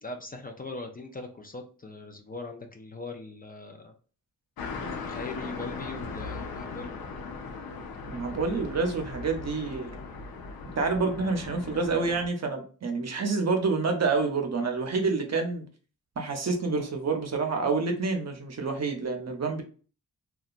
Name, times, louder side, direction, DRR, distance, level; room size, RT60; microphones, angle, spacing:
voice 1, 0.0-3.9 5.1-6.9, left 3 dB, 25° left, 4 dB, 0.5 m, -40 dB
sound 1, 4.6-12.3, left 4 dB, 80° left, 0.6 m, -38 dB
voice 2, 8.1-9.9 10.8-15.6 16.2-19.6, right 4 dB, 45° right, 4 dB, 0.7 m, -28 dB
2.8 x 2.3 x 2.4 m, 0.39 s
cardioid pair, 60°, 36 cm